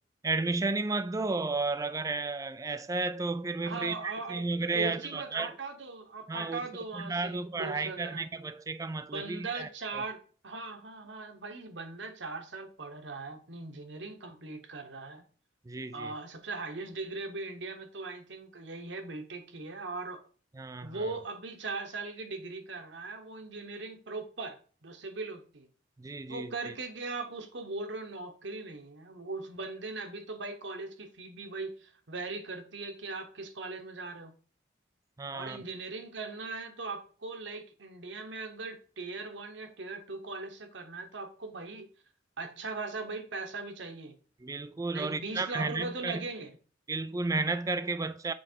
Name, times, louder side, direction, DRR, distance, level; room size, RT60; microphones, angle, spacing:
voice 1, 0.2-5.6 6.3-6.7 6.9-9.7 9.9-10.0 15.7-16.1 20.6-21.0 26.0-26.5 35.2-35.6 44.4-46.2 46.9-48.3, right 3 dB, 15° right, 0.3 m, -33 dB
voice 2, 3.6-4.5 4.7-8.2 9.1-15.3 15.9-20.2 20.8-25.7 26.3-34.3 35.3-41.9 42.4-44.2 44.9-46.5, right 3 dB, 65° right, 1.1 m, -39 dB
7.6 x 3.3 x 4.5 m
head